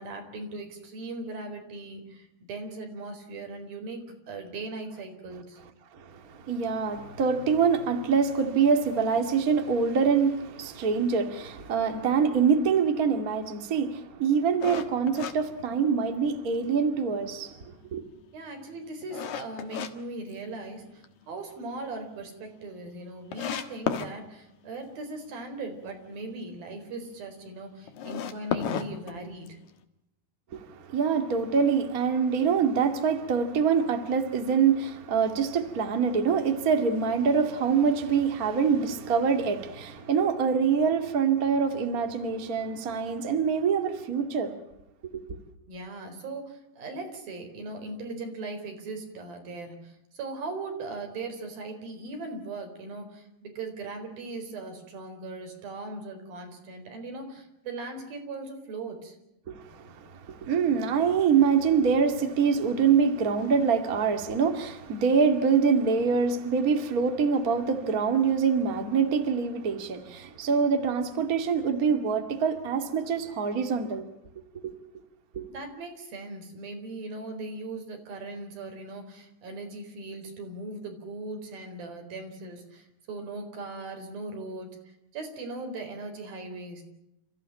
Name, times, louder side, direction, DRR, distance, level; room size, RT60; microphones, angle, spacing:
voice 1, 0.0-5.6 18.3-29.6 45.7-59.2 75.5-84.7 85.1-86.8, right 2 dB, 65° right, 6.0 m, -39 dB
voice 2, 6.0-17.5 17.9-18.0 30.5-44.5 45.1-45.2 59.5-74.1 74.6-74.7 75.3-75.5, right 6 dB, 30° right, 1.9 m, -25 dB
sound 1, 14.6-16.3 16.7-16.8 17.4-19.9 20.3-21.1 21.4-21.5 21.9-22.0 22.1-22.2 22.9-23.0 23.3-24.1 27.9-29.7, left 8 dB, 55° left, 2.6 m, -33 dB
29.0 x 15.0 x 8.9 m
omnidirectional pair, 4.5 m